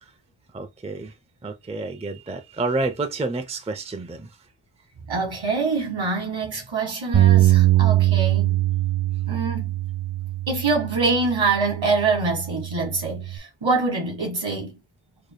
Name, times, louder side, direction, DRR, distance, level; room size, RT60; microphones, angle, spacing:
voice 1, 0.5-1.1 1.4-4.3, right 3 dB, 15° right, 0.5 m, -29 dB
voice 2, 5.1-8.6 9.3-9.8 10.5-14.7, right 4 dB, 65° right, 1.8 m, -25 dB
Bass guitar, 7.1-13.4, right 14 dB, 85° right, 0.8 m, -22 dB
4.9 x 2.9 x 2.2 m
wide cardioid pair, 65°, 49 cm